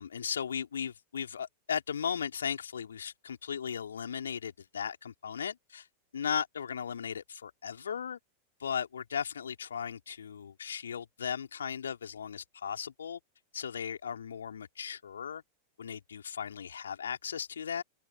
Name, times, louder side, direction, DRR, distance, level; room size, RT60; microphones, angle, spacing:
voice 1, 0.0-5.9 6.1-8.2 8.6-13.2 13.5-15.4 15.8-17.8, left 7 dB, 70° left, 3.9 m, -36 dB
open air
figure-of-eight pair, 90°, 0 cm